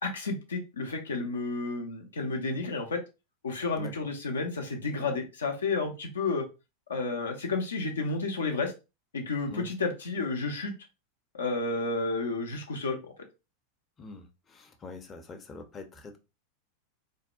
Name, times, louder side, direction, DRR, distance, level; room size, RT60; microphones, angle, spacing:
voice 1, 0.0-3.0 3.4-6.4 6.9-8.7 9.1-10.7 11.3-13.1, left 3 dB, 80° left, 3 dB, 0.5 m, -31 dB
voice 2, 14.0-16.2, left 3 dB, 25° left, 4 dB, 0.5 m, -44 dB
2.6 x 2.0 x 2.4 m, 0.28 s
figure-of-eight pair, 90°, 0 cm